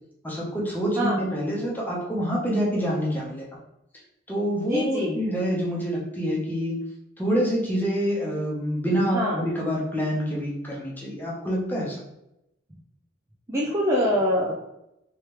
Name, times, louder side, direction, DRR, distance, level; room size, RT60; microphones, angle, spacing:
voice 1, 0.2-3.5 4.3-6.8 7.2-12.0, equal, 10° left, -4 dB, 0.9 m, -26 dB
voice 2, 1.0-1.3 4.6-5.2 9.1-9.4 13.5-14.6, equal, 15° right, -5 dB, 0.5 m, -24 dB
3.2 x 3.1 x 3.1 m, 0.85 s
head